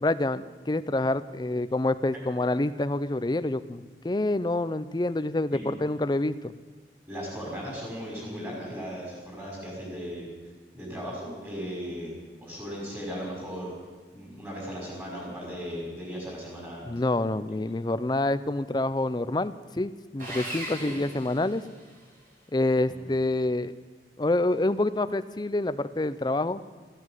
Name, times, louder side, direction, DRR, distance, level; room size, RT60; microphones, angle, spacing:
voice 1, 0.0-6.5 16.9-21.6 22.5-23.7 24.2-26.6, left 2 dB, 25° left, 14 dB, 0.5 m, -27 dB
voice 2, 7.1-10.3 10.7-12.1 12.4-13.7 14.1-16.9 17.5-17.6 20.8-20.9 22.8-23.1, equal, 15° right, -3 dB, 5.6 m, -37 dB
Sawing, 20.2-22.1, right 1 dB, 50° right, 5.6 m, -38 dB
15.5 x 9.5 x 9.1 m, 1.4 s
head